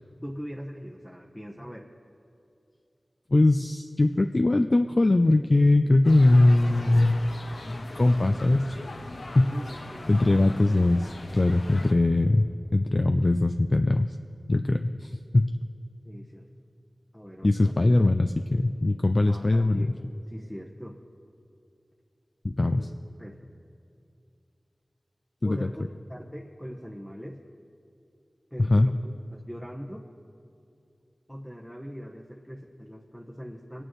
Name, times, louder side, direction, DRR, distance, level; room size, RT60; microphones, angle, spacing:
voice 1, 0.2-1.9 9.5-10.4 16.0-16.5 17.1-17.7 19.2-21.0 22.6-22.9 23.2-23.5 25.4-25.8 26.1-27.4 28.5-30.1 31.3-33.8, equal, 5° left, -1 dB, 1.0 m, -41 dB
voice 2, 3.3-7.2 7.7-8.8 9.3-9.5 10.1-12.4 12.7-14.1 14.5-15.5 17.4-19.9 22.4-22.8 25.4-25.7 28.7-28.9, left 2 dB, 50° left, 6 dB, 0.4 m, -21 dB
sound 1, 6.0-11.9, left 2 dB, 80° left, 0.8 m, -40 dB
21.5 x 8.9 x 3.1 m, 2.6 s
cardioid pair, 40°, 0 cm